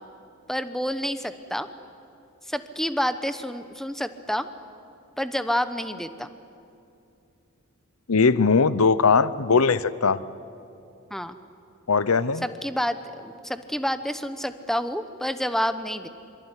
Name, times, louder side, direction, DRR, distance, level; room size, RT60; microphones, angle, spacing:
voice 1, 0.5-1.7 2.5-4.5 5.2-6.3 11.1-11.4 12.4-16.1, equal, ahead, 11 dB, 1.0 m, -28 dB
voice 2, 8.1-10.2 11.9-12.5, left 5 dB, 80° left, 17 dB, 0.8 m, -20 dB
25.0 x 24.5 x 9.8 m, 2.7 s
head